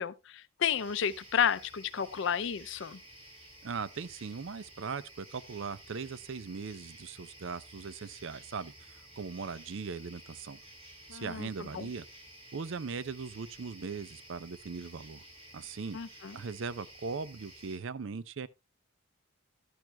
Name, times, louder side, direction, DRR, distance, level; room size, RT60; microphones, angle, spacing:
voice 1, 0.0-3.0 11.1-11.5 11.7-11.9 15.9-16.4, left 8 dB, 60° left, 0.5 m, -32 dB
sound 1, 0.7-17.8, right 1 dB, 25° right, 3.9 m, -53 dB
voice 2, 3.6-10.6 11.1-12.1 12.5-15.2 15.5-16.0 16.3-18.5, right 5 dB, 60° right, 0.5 m, -39 dB
12.0 x 10.5 x 2.2 m
head